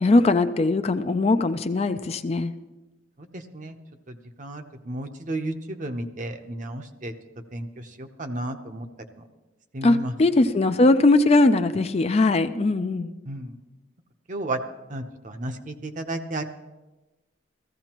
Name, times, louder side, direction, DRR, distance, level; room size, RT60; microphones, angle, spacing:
voice 1, 0.0-2.5 9.8-13.1, left 2 dB, 35° left, 10 dB, 0.4 m, -20 dB
voice 2, 4.1-7.1 7.5-8.9 9.7-10.1 13.3-13.5 14.3-14.6 14.9-16.4, right 1 dB, 40° right, 7 dB, 0.8 m, -33 dB
15.5 x 14.5 x 3.0 m, 1.1 s
head